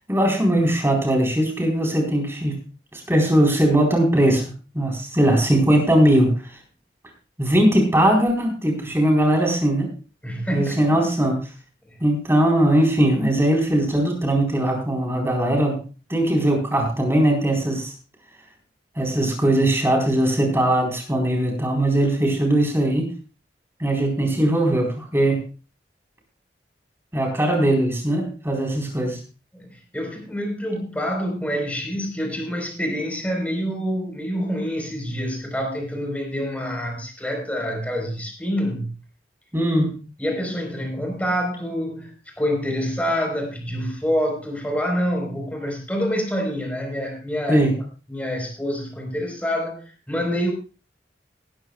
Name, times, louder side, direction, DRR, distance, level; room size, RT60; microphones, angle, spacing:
voice 1, 0.1-2.6 2.9-4.4 4.7-6.3 7.4-9.9 10.5-11.4 12.0-15.8 16.1-17.9 19.0-23.1 23.8-25.4 27.1-29.2 39.5-40.0 47.5-47.7, right 1 dB, 15° right, 1 dB, 4.1 m, -20 dB
voice 2, 10.2-11.0 11.9-12.0 29.5-39.0 40.2-47.7 48.1-50.5, equal, 10° left, 2 dB, 4.2 m, -27 dB
18.0 x 13.5 x 2.3 m, 0.33 s
head